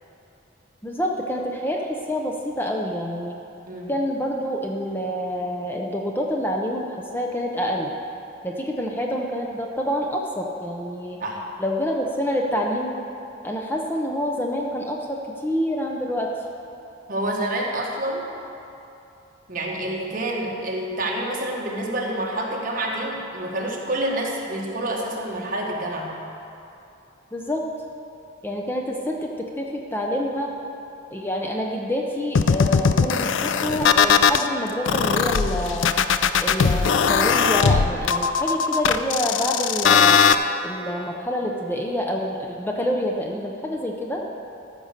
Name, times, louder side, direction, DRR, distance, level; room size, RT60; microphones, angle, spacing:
voice 1, 0.8-1.8 2.1-3.4 3.9-7.9 8.4-11.2 11.6-12.9 13.4-16.3 27.3-27.6 28.4-29.3 29.6-30.5 31.1-35.9 36.4-40.2 40.6-44.2, equal, 10° left, 0 dB, 0.6 m, -27 dB
voice 2, 17.1-18.3 19.5-26.1, right 1 dB, 45° right, -2 dB, 1.5 m, -28 dB
sound 1, 32.3-34.4 34.8-40.3, left 6 dB, 70° left, 0.4 m, -19 dB
14.0 x 5.4 x 6.6 m, 2.8 s
head